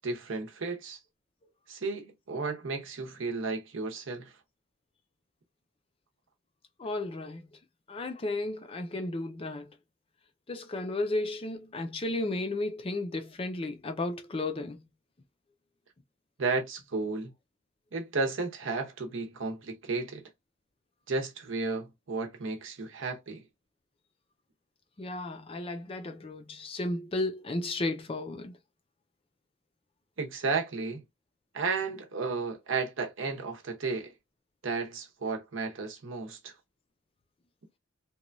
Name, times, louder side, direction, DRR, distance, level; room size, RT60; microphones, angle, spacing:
voice 1, 0.0-1.0 1.7-4.3 16.4-17.3 17.9-20.2 21.1-23.4 30.2-31.0 31.5-34.1 34.6-36.5, right 4 dB, 65° right, 0.8 m, -33 dB
voice 2, 6.8-7.6 7.9-9.7 10.5-14.8 25.0-28.6, left 2 dB, 25° left, 0.4 m, -34 dB
3.0 x 2.2 x 2.5 m
head